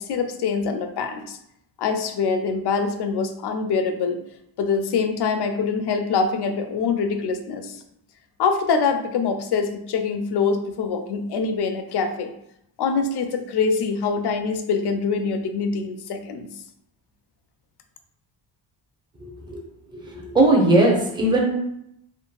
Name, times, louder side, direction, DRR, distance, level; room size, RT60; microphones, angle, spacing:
voice 1, 0.0-1.4 1.8-4.2 4.6-7.8 8.4-12.3 12.8-16.5, left 5 dB, 55° left, 7 dB, 0.5 m, -24 dB
voice 2, 19.2-19.6 19.9-21.6, right 2 dB, 10° right, -1 dB, 0.7 m, -19 dB
2.6 x 2.5 x 2.3 m, 0.76 s
supercardioid pair, 55°, 50 cm